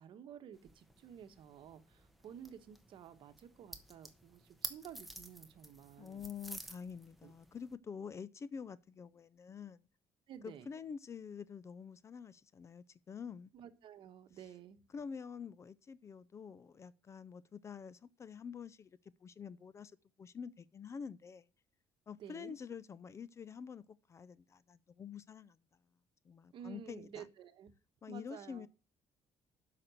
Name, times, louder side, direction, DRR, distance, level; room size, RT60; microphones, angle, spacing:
voice 1, 0.0-6.3 7.2-7.3 10.3-10.7 13.5-14.8 22.2-22.6 26.5-27.7 28.1-28.7, right 9 dB, 55° right, 1.2 m, -52 dB
sound 1, 0.5-7.7, right 1 dB, ahead, 1.0 m, -51 dB
voice 2, 6.0-9.8 10.4-13.5 14.9-19.9 20.2-21.5 22.1-23.8 24.1-25.6 26.2-27.3 28.0-28.7, left 6 dB, 30° left, 0.4 m, -47 dB
7.7 x 5.9 x 7.7 m
cardioid pair, 140°, 10 cm